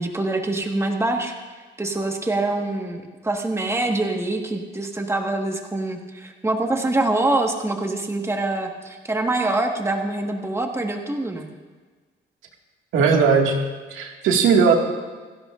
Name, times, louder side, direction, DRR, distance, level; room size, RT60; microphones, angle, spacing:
voice 1, 0.0-1.3 1.8-11.5, right 2 dB, 15° right, 2 dB, 1.6 m, -25 dB
voice 2, 12.9-13.6 13.9-14.8, right 5 dB, 85° right, 1 dB, 2.1 m, -17 dB
28.0 x 11.5 x 2.6 m, 1.4 s
cardioid pair, 90°, 20 cm